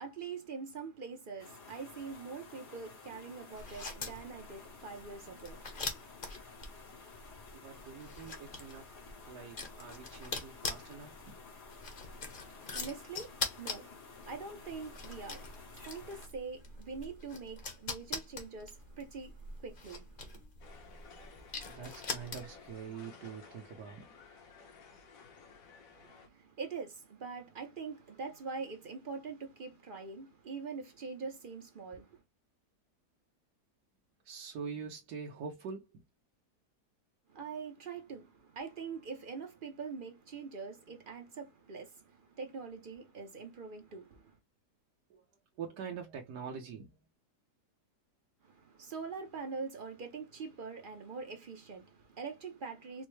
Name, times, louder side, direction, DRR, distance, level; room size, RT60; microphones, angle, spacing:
voice 1, 0.0-6.1 12.4-20.5 25.9-32.2 37.3-44.4 48.4-53.1, right 5 dB, 50° right, 0.6 m, -44 dB
sound 1, 1.4-16.3, left 4 dB, 80° left, 2.1 m, -53 dB
sound 2, 3.5-22.7, left 3 dB, 40° left, 0.9 m, -43 dB
voice 2, 7.5-9.0 9.3-11.4 21.7-24.1 34.2-36.0 45.1-45.2 45.6-47.0, right 6 dB, 75° right, 1.3 m, -44 dB
sound 3, 20.6-26.3, left 5 dB, 60° left, 1.2 m, -55 dB
4.4 x 2.0 x 3.1 m
omnidirectional pair, 1.7 m